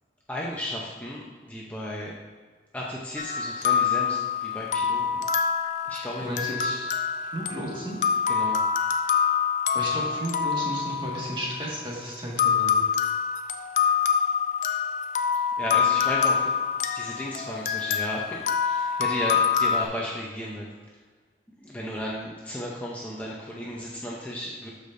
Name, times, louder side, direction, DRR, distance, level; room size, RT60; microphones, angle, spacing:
voice 1, 0.3-1.2 1.5-2.1 2.7-5.2 5.9-6.8 8.3-8.6 15.6-16.5 16.9-20.6 21.7-24.7, left 1 dB, 10° left, -4 dB, 0.6 m, -34 dB
sound 1, 3.2-11.8 12.4-19.8, left 7 dB, 45° left, 0.5 m, -26 dB
voice 2, 6.2-6.9 7.3-8.0 9.7-12.8, right 1 dB, 30° right, -4 dB, 1.7 m, -33 dB
13.0 x 5.1 x 2.6 m, 1.5 s
head